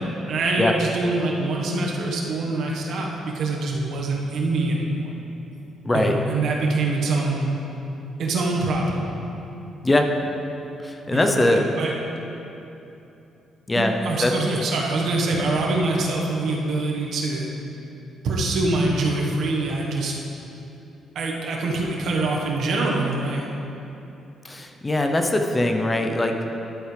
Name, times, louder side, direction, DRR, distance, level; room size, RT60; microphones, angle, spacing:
voice 1, 0.3-5.1 5.9-7.5 8.2-9.0 11.1-11.9 13.7-17.5 18.2-20.1 21.1-23.5, right 2 dB, 70° right, -1 dB, 1.3 m, -24 dB
voice 2, 10.8-11.6 13.7-13.9 14.2-14.3 24.4-26.3, left 1 dB, 20° left, 4 dB, 0.7 m, -21 dB
11.5 x 7.9 x 3.3 m, 2.9 s
cardioid pair, 90°, 0 cm